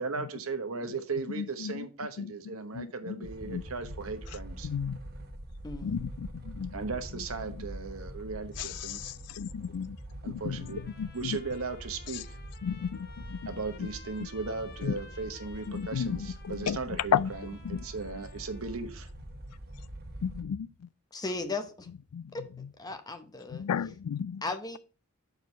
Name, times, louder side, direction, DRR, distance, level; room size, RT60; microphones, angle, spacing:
voice 1, 0.0-4.7 6.7-9.1 10.2-10.8 11.1-12.4 13.5-19.1, right 4 dB, 65° right, 1.1 m, -37 dB
voice 2, 1.4-1.9 2.2-2.3 2.7-3.2 3.5-3.6 4.6-5.0 5.8-6.7 8.6-10.0 10.3-11.4 12.6-13.5 13.8-13.9 14.8-14.9 15.7-17.3 17.6-17.8 20.2-20.7 22.1-22.3 23.5-24.4, left 8 dB, 85° left, 0.4 m, -33 dB
sound 1, 3.2-20.4, right 1 dB, 45° right, 1.1 m, -44 dB
voice 3, 5.6-6.0 21.1-21.9 22.3-22.4 22.8-23.7 24.4-24.8, left 3 dB, 15° left, 0.8 m, -36 dB
Trumpet, 10.4-19.0, left 4 dB, 45° left, 1.1 m, -55 dB
6.2 x 4.8 x 5.4 m
head